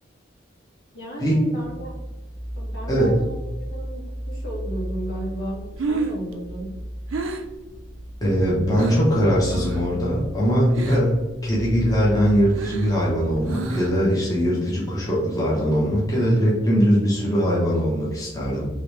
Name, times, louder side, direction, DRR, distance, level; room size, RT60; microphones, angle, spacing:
voice 1, 0.9-2.0 2.5-6.8, right 1 dB, 75° left, -5 dB, 1.4 m, -34 dB
sound 1, 1.5-13.5, equal, 45° left, 0.8 m, -35 dB
Breathing, 5.7-9.1 9.5-10.0 10.2-11.2 11.6-14.1, right 3 dB, 85° right, 0.5 m, -31 dB
voice 2, 8.2-11.1 11.4-18.7, equal, 20° left, -5 dB, 0.8 m, -21 dB
3.1 x 3.0 x 3.2 m, 1.1 s
head